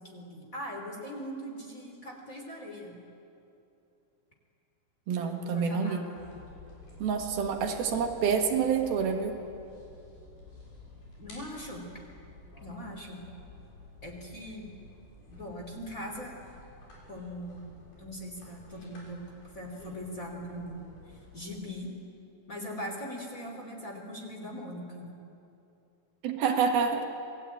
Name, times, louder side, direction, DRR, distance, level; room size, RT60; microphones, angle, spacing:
voice 1, 0.1-3.0 5.2-6.2 11.2-11.9 12.6-13.2 14.0-14.7 15.3-16.3 17.1-17.6 18.0-19.2 19.5-20.8 21.3-21.9 22.5-25.2, equal, 20° left, 0 dB, 3.3 m, -40 dB
voice 2, 5.1-6.1 7.0-9.4 26.2-27.1, right 6 dB, 75° right, 4 dB, 3.4 m, -27 dB
sound 1, 6.1-21.6, left 2 dB, 75° left, 8.2 m, -51 dB
27.5 x 20.0 x 9.1 m, 2.7 s
omnidirectional pair, 4.4 m